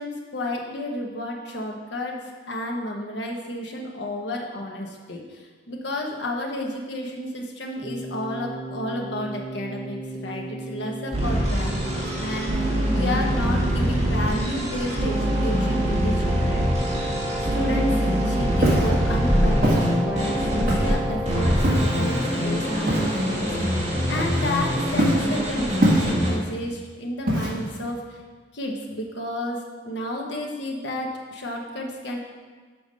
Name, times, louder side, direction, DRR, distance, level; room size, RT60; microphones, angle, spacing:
voice 1, 0.0-2.2 2.5-17.0 17.4-28.0 28.5-32.2, left 1 dB, 70° left, 0 dB, 1.1 m, -31 dB
Keyboard (musical), 7.8-22.9, right 1 dB, 20° right, 0.6 m, -33 dB
sound 1, 11.1-20.9 21.2-26.3, equal, 35° right, 1.8 m, -24 dB
Walk footsteps, 18.6-18.9 19.6-19.9 20.7-21.0 21.6-22.0 22.9-23.2 24.1-24.6 25.0-25.3 25.8-26.3 27.3-27.8, right 1 dB, 50° right, 1.6 m, -22 dB
7.1 x 4.8 x 5.4 m, 1.4 s
head